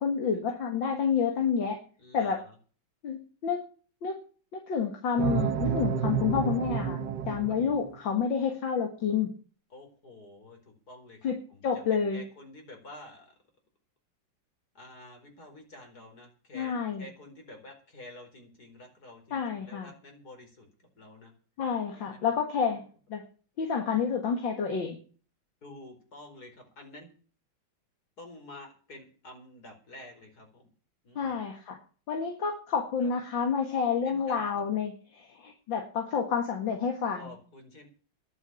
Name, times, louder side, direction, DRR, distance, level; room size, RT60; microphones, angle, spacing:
voice 1, 0.0-1.8 2.1-2.4 3.0-3.6 4.0-4.2 4.5-7.0 7.3-9.3 11.2-11.4 11.6-12.2 16.5-17.0 19.3-19.9 21.6-22.8 23.1-23.2 23.6-25.0 31.2-31.8 32.1-37.3, left 6 dB, 70° left, 3 dB, 2.6 m, -29 dB
voice 2, 2.0-2.5 9.7-11.8 12.1-13.3 14.7-21.3 21.9-22.2 22.6-22.8 25.6-27.1 28.2-30.7 31.0-31.4 33.0-33.1 34.0-34.6 37.1-37.9, left 1 dB, 50° left, 3 dB, 5.2 m, -49 dB
sound 1, 5.2-8.0, right 7 dB, 65° right, 1.5 m, -30 dB
11.0 x 8.8 x 9.8 m, 0.40 s
omnidirectional pair, 2.2 m